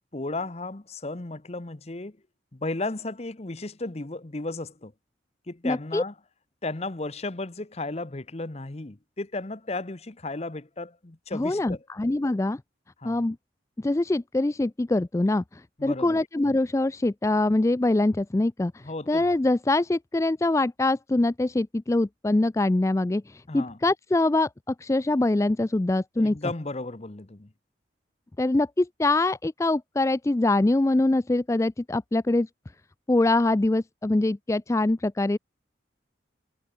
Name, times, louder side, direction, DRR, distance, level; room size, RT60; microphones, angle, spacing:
voice 1, 0.1-2.2 2.5-4.9 5.5-6.1 6.6-11.8 13.0-13.3 15.8-16.2 18.8-19.3 23.5-23.8 26.2-27.5, left 2 dB, 35° left, 0.9 m, -34 dB
voice 2, 5.6-6.0 11.3-12.6 13.0-13.4 13.8-26.4 28.4-32.5 33.1-35.4, left 2 dB, 15° left, 0.3 m, -24 dB
head